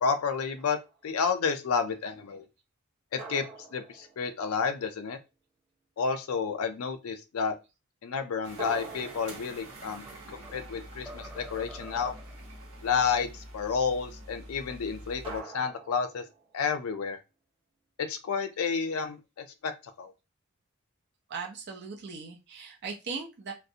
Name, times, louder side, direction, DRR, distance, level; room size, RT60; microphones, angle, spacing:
voice 1, 0.0-2.5 3.1-3.4 3.7-5.2 6.0-7.5 8.0-10.0 10.3-12.1 12.8-16.2 16.5-17.2 18.0-19.7 20.0-20.1, left 5 dB, 80° left, 8 dB, 0.4 m, -30 dB
sound 1, 0.6-1.1 3.2-5.0 8.6-11.2 15.2-16.9, right 4 dB, 25° right, 0.8 m, -46 dB
sound 2, 8.4-15.4, right 1 dB, 75° right, 1.0 m, -46 dB
sound 3, 9.6-10.7 11.1-12.5, equal, ahead, 0.3 m, -48 dB
voice 2, 21.3-23.5, right 5 dB, 50° right, 0 dB, 0.6 m, -38 dB
2.4 x 2.0 x 2.7 m, 0.26 s
head